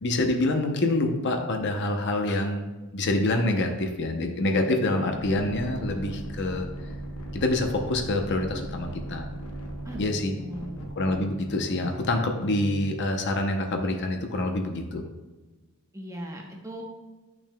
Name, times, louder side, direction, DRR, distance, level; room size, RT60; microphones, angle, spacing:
voice 1, 0.0-2.7 2.9-6.7 7.3-9.3 10.0-10.3 11.0-15.0, left 2 dB, 50° left, 4 dB, 0.7 m, -26 dB
sound 1, 4.4-13.0, right 1 dB, 85° left, 1.1 m, -38 dB
voice 2, 9.8-10.7 15.9-16.8, equal, 15° right, 0 dB, 0.9 m, -38 dB
8.7 x 6.0 x 2.2 m, 1.2 s
head